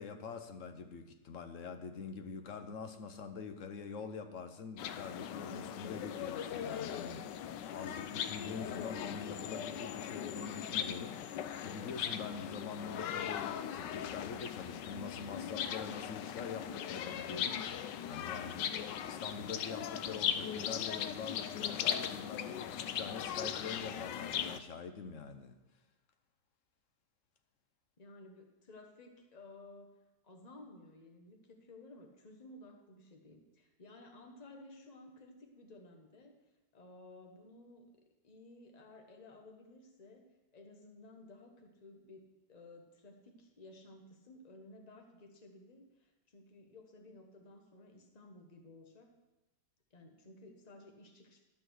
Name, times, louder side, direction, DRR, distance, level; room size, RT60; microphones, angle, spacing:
voice 1, 0.0-18.8 19.0-25.6, left 5 dB, 55° left, 7 dB, 1.1 m, -45 dB
sound 1, 4.8-24.6, left 9 dB, 90° left, 1.2 m, -39 dB
voice 2, 28.0-29.9 30.2-36.3 36.7-40.2 40.5-49.1 49.9-51.4, left 2 dB, 25° left, 3 dB, 1.2 m, -56 dB
12.5 x 6.1 x 6.3 m, 1.0 s
omnidirectional pair, 1.8 m